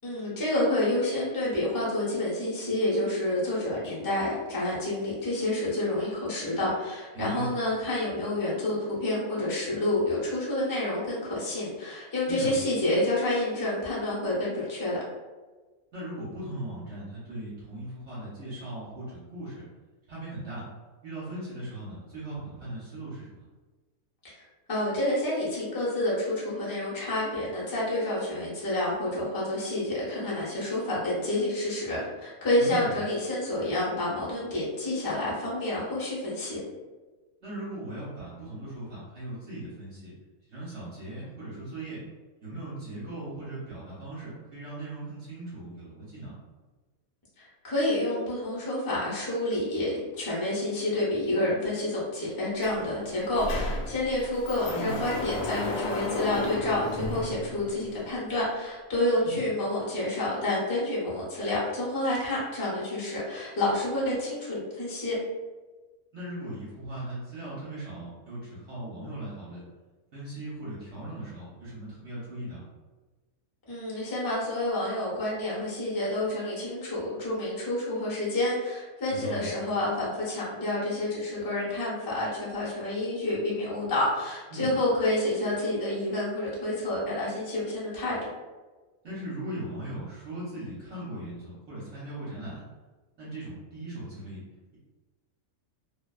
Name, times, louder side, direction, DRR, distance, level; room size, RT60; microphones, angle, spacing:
voice 1, 0.0-15.0 24.2-24.3 24.7-36.6 47.4-65.2 73.7-88.2, left 1 dB, 30° left, -7 dB, 0.4 m, -29 dB
voice 2, 7.1-7.5 12.3-12.5 15.9-19.6 20.1-20.7 21.0-23.5 32.6-33.0 37.4-40.1 40.5-42.0 42.4-46.3 54.7-55.0 59.2-59.4 66.1-69.6 70.1-72.6 79.1-79.5 84.5-84.7 89.0-92.6 93.2-94.4, right 1 dB, 55° right, -9 dB, 0.9 m, -38 dB
Sliding door, 52.6-52.7 53.0-58.0, left 2 dB, 75° left, 1.0 m, -34 dB
2.5 x 2.2 x 2.3 m, 1.3 s
omnidirectional pair, 1.6 m